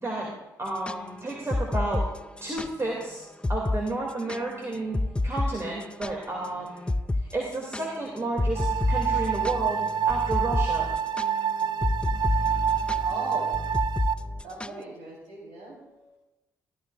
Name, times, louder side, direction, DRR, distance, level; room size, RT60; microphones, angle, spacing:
voice 1, 0.0-2.1 2.4-3.2 3.5-5.0 5.2-10.9, right 2 dB, 25° right, -3 dB, 2.6 m, -32 dB
sound 1, 0.7-2.7 3.0-3.1 3.4-3.8 4.1-6.5 6.9-7.3 7.5-14.8, left 2 dB, 10° left, 0.4 m, -29 dB
sound 2, 8.5-14.1, right 8 dB, 50° right, 0.5 m, -27 dB
voice 2, 13.0-13.6 14.4-16.2, right 2 dB, 70° right, -3 dB, 4.0 m, -38 dB
14.5 x 12.5 x 2.5 m, 1.0 s
figure-of-eight pair, 40°, 10 cm